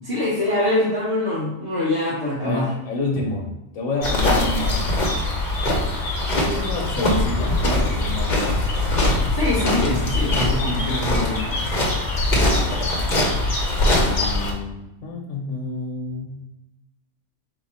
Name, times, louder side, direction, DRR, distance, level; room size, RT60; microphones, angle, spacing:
voice 1, 0.0-2.7 9.3-11.7, left 2 dB, 55° right, -9 dB, 1.4 m, -24 dB
voice 2, 2.4-4.9 6.3-8.8 10.1-10.3 12.3-13.0 13.8-16.4, left 2 dB, 70° left, -1 dB, 1.1 m, -29 dB
sound 1, 4.0-14.5, left 2 dB, 40° left, 0.9 m, -22 dB
3.8 x 2.9 x 4.2 m, 0.94 s
omnidirectional pair, 1.4 m